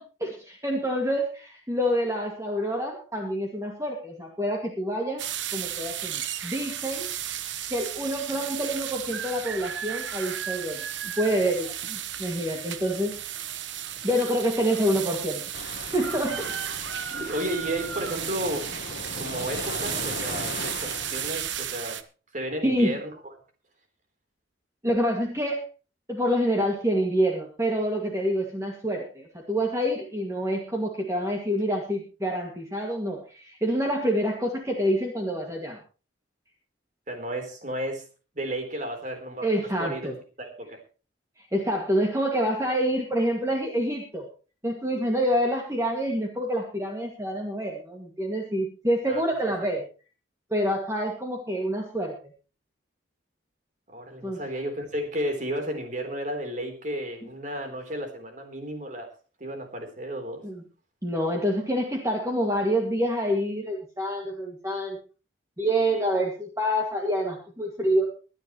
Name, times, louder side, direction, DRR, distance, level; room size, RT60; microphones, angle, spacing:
voice 1, 0.0-5.2 5.5-7.1 7.7-13.1 14.0-16.5 17.2-17.3 22.6-22.9 24.8-25.6 26.1-35.8 39.4-40.1 41.4-44.3 44.6-49.8 50.5-52.2 54.2-54.4 60.4-60.6 61.0-65.0 65.6-68.1, equal, 15° right, 0 dB, 2.1 m, -27 dB
sound 1, 5.2-22.0, right 10 dB, 70° right, 1.1 m, -34 dB
sound 2, 15.5-21.7, left 3 dB, 50° left, 1.2 m, -38 dB
voice 2, 17.1-18.7 19.2-22.0 22.3-23.1 37.1-38.0 38.3-39.5 39.8-40.1 40.4-40.8 49.1-49.5 53.9-59.1 59.4-60.4, right 1 dB, 40° right, 5 dB, 3.8 m, -33 dB
23.0 x 10.0 x 3.1 m, 0.35 s
head